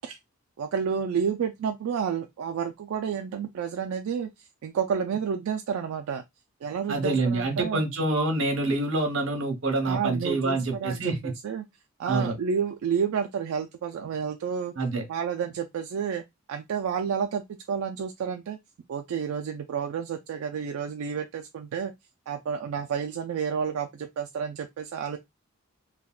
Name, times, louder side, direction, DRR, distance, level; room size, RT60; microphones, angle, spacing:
voice 1, 0.6-6.2 6.6-7.8 9.8-11.7 12.0-14.7 15.1-16.2 16.5-18.6 18.9-21.9 22.3-25.2, right 7 dB, 90° right, 0.3 m, -30 dB
voice 2, 6.9-11.3 12.0-12.3 14.7-15.0, right 2 dB, 70° right, 1.0 m, -26 dB
3.4 x 2.2 x 2.3 m
head